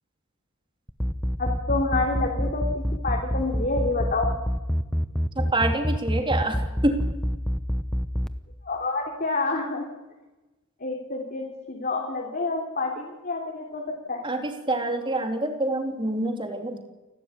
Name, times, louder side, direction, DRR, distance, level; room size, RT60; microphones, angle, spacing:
sound 1, 0.9-8.3, equal, ahead, 0.8 m, -25 dB
voice 1, 1.4-4.3 8.6-9.8 10.8-13.8 14.1-14.2, left 3 dB, 45° left, 0 dB, 3.2 m, -28 dB
voice 2, 5.3-7.0 14.2-16.8, right 1 dB, 25° right, 5 dB, 3.1 m, -26 dB
29.0 x 12.5 x 9.8 m, 1.1 s
head